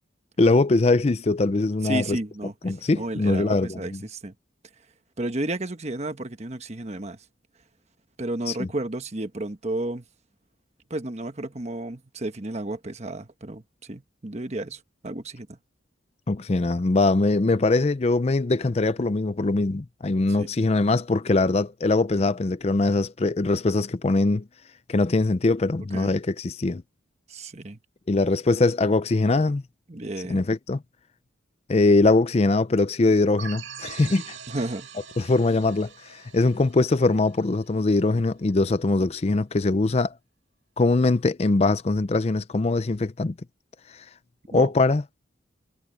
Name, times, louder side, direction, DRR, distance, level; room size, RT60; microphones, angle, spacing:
voice 1, 0.4-2.2 2.6-4.0 8.5-8.7 16.3-24.4 24.9-26.8 28.1-29.6 30.3-30.8 31.7-34.4 35.2-40.1 40.8-43.3 44.5-45.0, left 2 dB, 35° left, 0.5 m, -22 dB
voice 2, 1.8-4.3 5.2-7.2 8.2-10.0 10.9-15.6 20.4-20.5 25.9-26.1 27.3-27.8 29.9-30.4 34.5-34.9 44.5-44.7, right 1 dB, 35° right, 1.2 m, -32 dB
sound 1, 33.4-37.8, right 7 dB, 85° right, 1.9 m, -42 dB
head